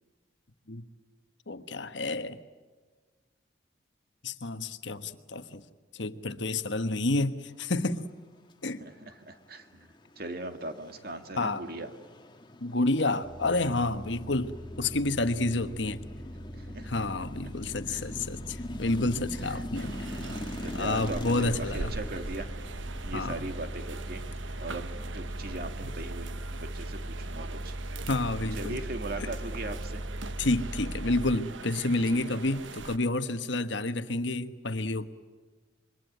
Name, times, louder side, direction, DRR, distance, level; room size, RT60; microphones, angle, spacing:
voice 1, 1.5-2.4 4.2-5.6 5.9-8.1 8.6-8.8 11.4-11.6 12.6-14.5 14.8-16.0 16.9-19.9 20.7-21.9 23.1-23.4 28.1-28.8 29.2-29.3 30.4-35.0, left 2 dB, 70° left, 1.3 m, -29 dB
voice 2, 8.8-11.9 16.6-16.9 17.9-18.0 19.3-19.7 20.5-22.5 23.0-24.2 24.6-27.7 28.6-30.0 31.9-32.3, right 2 dB, 50° right, 2.0 m, -39 dB
sound 1, 9.6-26.3, left 1 dB, 25° left, 1.6 m, -43 dB
sound 2, 13.2-31.4, right 1 dB, 25° right, 0.8 m, -40 dB
sound 3, 19.7-33.0, right 3 dB, 80° right, 1.1 m, -42 dB
27.0 x 23.0 x 9.4 m
head